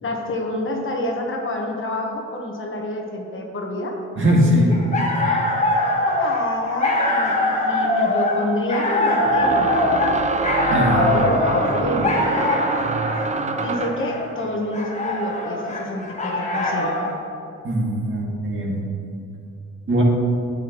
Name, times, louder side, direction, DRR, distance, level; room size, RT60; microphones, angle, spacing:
voice 1, 0.0-3.9 6.1-9.8 10.9-12.5 13.6-16.9, left 1 dB, 40° left, 1 dB, 1.2 m, -27 dB
voice 2, 4.2-4.7 5.2-5.5 10.7-11.0 17.6-18.8 19.9-20.0, equal, 40° right, -2 dB, 2.0 m, -20 dB
sound 1, 4.7-17.1, left 1 dB, 25° left, 1.6 m, -23 dB
sound 2, 7.3-7.4 9.2-14.1, right 4 dB, 25° right, 0.5 m, -25 dB
9.4 x 8.2 x 3.0 m, 2.6 s
cardioid pair, 90°, 30 cm